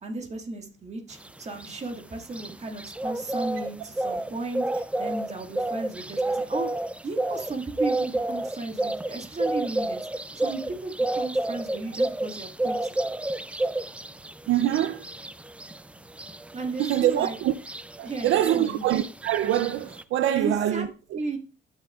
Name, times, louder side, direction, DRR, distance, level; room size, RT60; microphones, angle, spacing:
voice 1, 0.0-6.7 7.0-10.1 10.4-13.0 16.5-17.4 18.0-18.9 20.4-20.9 21.1-21.4, right 3 dB, 35° right, 1.9 m, -34 dB
sound 1, 1.2-20.0, right 2 dB, 5° right, 0.3 m, -31 dB
voice 2, 14.5-15.1 16.8-17.5 18.0-21.4, right 12 dB, 80° right, 0.5 m, -25 dB
15.0 x 6.6 x 2.4 m
cardioid pair, 90°, 20 cm